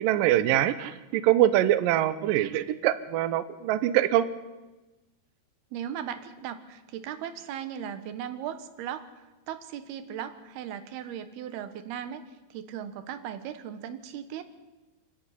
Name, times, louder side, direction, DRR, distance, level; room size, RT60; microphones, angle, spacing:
voice 1, 0.0-4.2, right 13 dB, 85° right, 13 dB, 2.0 m, -24 dB
voice 2, 5.7-12.2 12.5-14.4, right 9 dB, 70° right, 10 dB, 2.9 m, -37 dB
26.5 x 11.5 x 9.9 m, 1.1 s
omnidirectional pair, 5.2 m